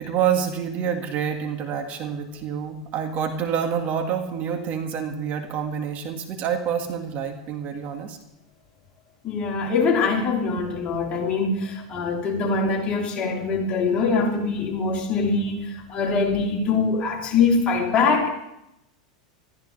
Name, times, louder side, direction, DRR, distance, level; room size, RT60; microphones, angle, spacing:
voice 1, 0.0-8.2, right 7 dB, 45° right, 4 dB, 2.0 m, -27 dB
voice 2, 9.2-18.3, left 4 dB, 35° left, -2 dB, 3.6 m, -23 dB
20.5 x 14.0 x 3.4 m, 0.85 s
hypercardioid pair, 105°, 4 cm